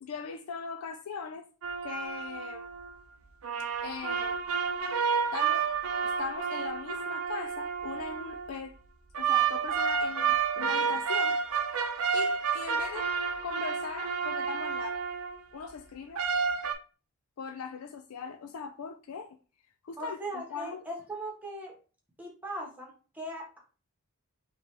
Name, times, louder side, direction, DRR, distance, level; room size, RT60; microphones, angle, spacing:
voice 1, 0.0-1.5 1.8-2.7 3.8-4.4 5.3-5.7 6.0-8.7 9.2-11.4 12.1-13.1 13.4-15.0 15.5-16.2 17.4-19.4 19.8-20.8, left 5 dB, 80° left, 0.4 m, -39 dB
sound 1, 1.6-2.9 3.4-8.5 9.1-15.3 16.2-16.7, right 6 dB, 75° right, 0.6 m, -30 dB
voice 2, 20.0-21.7 22.2-23.6, right 1 dB, 5° right, 1.3 m, -39 dB
5.0 x 3.0 x 3.3 m
head